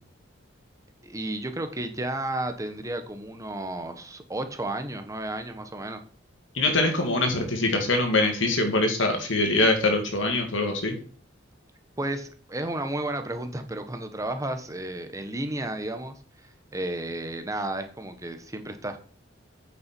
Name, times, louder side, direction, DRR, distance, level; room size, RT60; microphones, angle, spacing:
voice 1, 1.0-6.0 12.0-16.2 16.7-19.0, right 1 dB, 15° right, 7 dB, 1.1 m, -32 dB
voice 2, 6.5-11.0, left 2 dB, 80° left, 4 dB, 2.3 m, -23 dB
8.7 x 6.9 x 4.5 m, 0.43 s
head